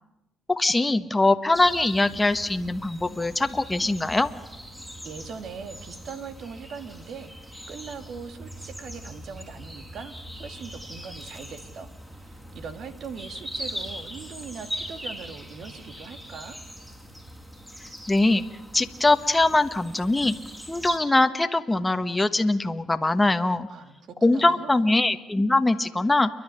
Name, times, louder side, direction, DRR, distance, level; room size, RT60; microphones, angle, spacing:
voice 1, 0.5-4.3 18.1-18.4 18.7-20.3 20.7-23.7 24.2-26.3, left 2 dB, 15° left, 8 dB, 1.2 m, -22 dB
sound 1, 1.5-21.0, equal, 10° right, 4.7 m, -40 dB
voice 2, 5.0-7.3 7.7-16.6 23.7-24.8, right 6 dB, 65° right, 10 dB, 2.1 m, -40 dB
29.5 x 11.5 x 9.9 m, 0.96 s
cardioid pair, 90°, 0 cm